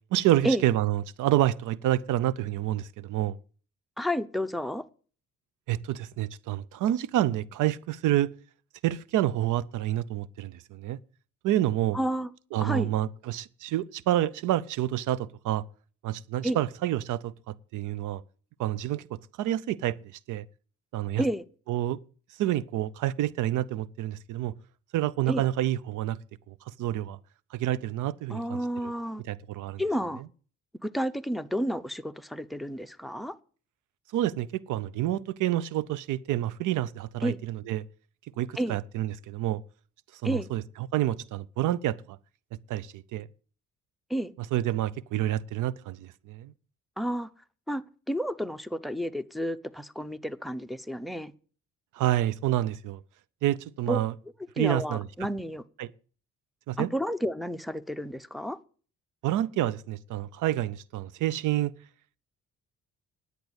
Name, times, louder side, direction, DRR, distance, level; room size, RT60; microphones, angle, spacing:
voice 1, 0.1-3.4 5.7-8.3 8.8-11.0 11.4-12.0 12.5-15.6 16.0-18.2 18.6-19.0 19.4-20.0 20.3-20.4 20.9-21.2 21.7-22.0 22.4-24.5 24.9-26.2 26.5-27.2 27.5-28.9 29.3-29.8 34.1-37.8 38.4-39.6 40.2-42.2 42.7-43.3 44.5-46.5 51.9-53.0 53.4-54.1 54.6-55.1 55.8-55.9 56.7-56.9 59.2-61.7, right 13 dB, 85° right, 0.7 m, -28 dB
voice 2, 4.0-4.8 11.9-12.3 12.6-12.9 16.4-16.6 21.2-21.4 25.3-25.5 28.3-29.2 29.8-30.2 30.8-33.4 37.2-37.4 38.6-38.8 40.2-40.5 44.1-44.3 47.0-47.3 47.7-51.3 53.9-54.0 54.6-55.6 56.8-58.6, equal, ahead, 0.8 m, -30 dB
10.5 x 8.3 x 8.1 m
cardioid pair, 90°, 30 cm